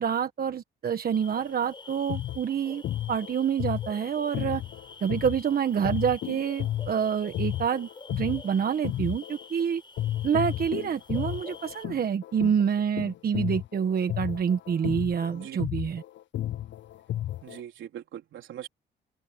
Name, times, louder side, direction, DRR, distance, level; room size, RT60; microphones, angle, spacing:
voice 1, 0.0-2.8 3.1-4.6 5.0-9.8 10.2-16.0, right 7 dB, 50° right, 1.3 m, -27 dB
sound 1, 1.1-11.9, left 4 dB, 25° left, 4.2 m, -48 dB
sound 2, 1.9-9.6 10.0-17.6, left 12 dB, 65° left, 0.6 m, -33 dB
voice 2, 15.3-15.6 17.4-18.7, right 11 dB, 75° right, 3.6 m, -41 dB
open air
cardioid pair, 90°, 20 cm